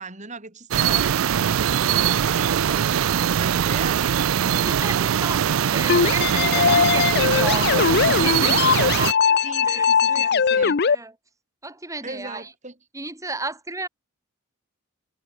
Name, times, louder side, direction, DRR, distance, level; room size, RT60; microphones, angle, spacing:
voice 1, 0.0-4.6 9.4-10.8 12.0-12.7, right 3 dB, 35° right, 4.4 m, -38 dB
sound 1, 0.7-9.1, right 9 dB, 75° right, 0.4 m, -21 dB
voice 2, 4.6-9.1 9.6-10.3 10.6-11.2 11.6-12.5 12.9-13.9, right 2 dB, 15° right, 6.1 m, -33 dB
sound 2, 5.9-11.0, left 6 dB, 50° left, 0.6 m, -20 dB
head